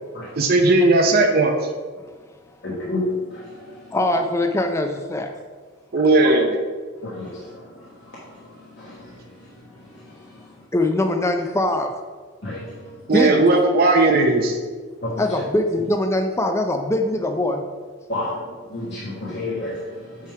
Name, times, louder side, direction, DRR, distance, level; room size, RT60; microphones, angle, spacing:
voice 1, 0.4-1.5 5.9-6.6 13.1-14.6, right 2 dB, 45° right, 2 dB, 0.5 m, -16 dB
voice 2, 2.6-3.1 7.0-7.3 8.8-8.9 12.4-12.6 15.0-15.2 18.1-18.4 18.7-19.7, left 2 dB, 55° left, -6 dB, 1.3 m, -28 dB
voice 3, 3.9-5.3 10.7-11.9 13.1-13.4 15.2-17.6, left 1 dB, 15° left, 5 dB, 0.4 m, -22 dB
8.4 x 3.5 x 4.5 m, 1.5 s
head